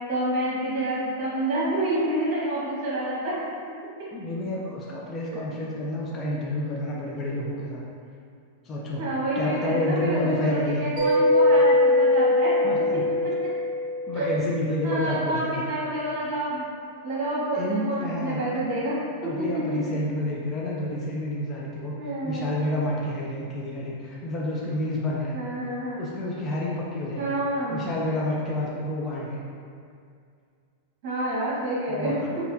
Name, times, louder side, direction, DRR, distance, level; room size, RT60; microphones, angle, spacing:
voice 1, 0.1-3.4 9.0-12.6 14.1-14.4 14.8-16.7 17.0-19.0 19.4-19.8 22.0-22.5 25.3-26.0 27.2-27.8 31.0-32.2, right 1 dB, 40° right, -7 dB, 1.4 m, -28 dB
voice 2, 4.1-7.8 8.6-9.0 9.4-10.8 12.6-13.0 14.1-15.6 17.5-18.4 19.2-25.4 26.0-27.4 27.7-29.4 32.0-32.4, left 1 dB, 20° left, -4 dB, 0.4 m, -29 dB
Mallet percussion, 11.0-14.4, left 2 dB, 15° right, 1.1 m, -21 dB
4.0 x 2.7 x 2.7 m, 2.2 s
supercardioid pair, 175°, 0 cm